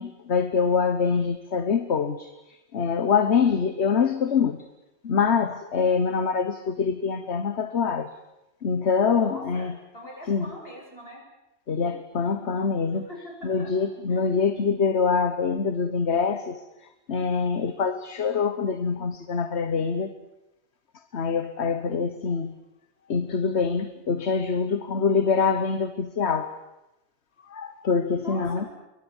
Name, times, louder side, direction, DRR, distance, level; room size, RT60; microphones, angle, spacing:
voice 1, 0.0-2.3 2.7-4.6 5.0-8.1 8.6-9.8 10.3-10.5 11.7-13.1 13.4-16.6 17.1-20.1 21.1-22.5 23.1-26.6 27.5-28.7, left 5 dB, 80° left, 10 dB, 1.5 m, -24 dB
voice 2, 9.1-9.7 9.9-11.2 13.1-14.2 28.2-28.7, equal, 60° left, -1 dB, 7.8 m, -42 dB
28.5 x 23.0 x 7.2 m, 0.95 s
omnidirectional pair, 1.1 m